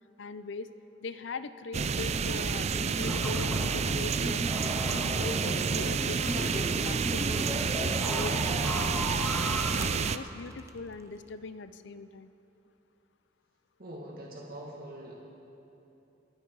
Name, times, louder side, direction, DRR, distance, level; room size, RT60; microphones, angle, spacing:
voice 1, 0.2-0.7 1.0-4.4 4.9-9.1 9.7-12.3, left 4 dB, 70° left, 12 dB, 0.5 m, -41 dB
sound 1, 1.7-10.2, right 5 dB, 35° right, 0.4 m, -29 dB
sound 2, 3.0-9.7, equal, 5° left, 2.2 m, -36 dB
sound 3, 5.9-11.4, right 3 dB, 15° right, 0.8 m, -49 dB
voice 2, 13.8-15.3, right 1 dB, 55° right, -3 dB, 2.1 m, -43 dB
28.5 x 9.5 x 4.7 m, 3.0 s
head